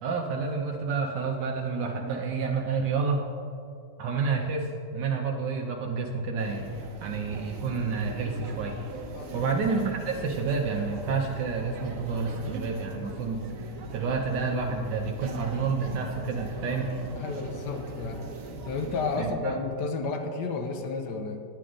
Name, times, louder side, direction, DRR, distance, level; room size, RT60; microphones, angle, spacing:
voice 1, 0.0-3.2 4.0-6.6 7.0-8.8 9.3-13.6 13.9-16.9 19.2-19.6, right 4 dB, 85° right, 0 dB, 1.4 m, -29 dB
sound 1, 6.4-19.2, right 3 dB, 55° right, 1.2 m, -41 dB
voice 2, 9.1-9.4 17.1-18.3 18.6-21.4, left 4 dB, 80° left, 5 dB, 1.4 m, -32 dB
9.8 x 9.3 x 3.8 m, 2.4 s
omnidirectional pair, 1.8 m